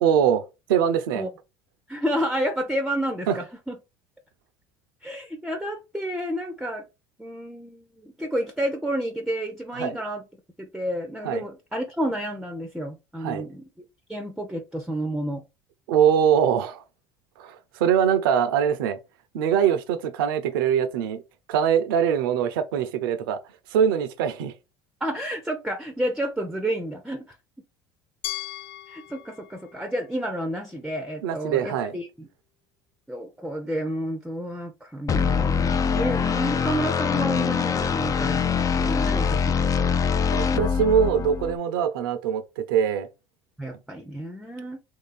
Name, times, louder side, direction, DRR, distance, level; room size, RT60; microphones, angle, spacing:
voice 1, 0.0-0.4 0.7-1.2 3.3-3.4 9.7-10.0 11.2-11.4 13.2-13.5 15.9-16.8 17.4-19.0 19.3-21.2 21.5-23.4 23.7-24.5 31.2-32.0 40.3-43.1, right 8 dB, 80° right, 0.7 m, -23 dB
voice 2, 1.9-3.8 5.0-6.8 7.2-10.2 10.6-13.6 14.1-15.4 25.0-27.4 28.9-32.3 33.1-40.0 43.6-44.8, right 1 dB, 5° right, 0.6 m, -30 dB
Glass, 28.2-31.2, left 14 dB, 85° left, 0.4 m, -39 dB
sound 1, 35.1-41.6, left 6 dB, 30° left, 0.4 m, -23 dB
3.1 x 2.8 x 4.0 m
hypercardioid pair, 80°, 11 cm